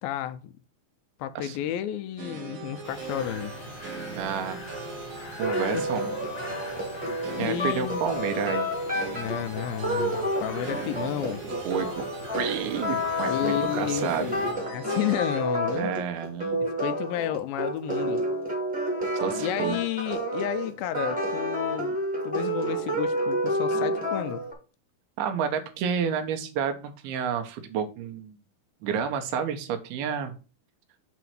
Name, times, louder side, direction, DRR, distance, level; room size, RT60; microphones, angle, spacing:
voice 1, 0.0-0.5 1.2-3.5 5.7-5.9 7.4-8.0 9.1-11.4 13.3-15.9 16.8-18.2 19.4-22.0 22.2-24.4, left 11 dB, 80° left, 2.2 m, -31 dB
sound 1, 2.2-15.4, right 5 dB, 60° right, 2.7 m, -40 dB
sound 2, 2.8-14.5, left 2 dB, 55° left, 1.1 m, -43 dB
voice 2, 4.2-4.6 5.4-6.1 7.4-8.7 11.6-12.1 12.3-14.3 15.8-16.6 19.1-19.8 25.2-28.3 28.8-30.4, right 7 dB, 85° right, 2.8 m, -30 dB
sound 3, 5.4-24.5, equal, 5° right, 1.1 m, -30 dB
7.6 x 3.0 x 5.7 m
omnidirectional pair, 4.5 m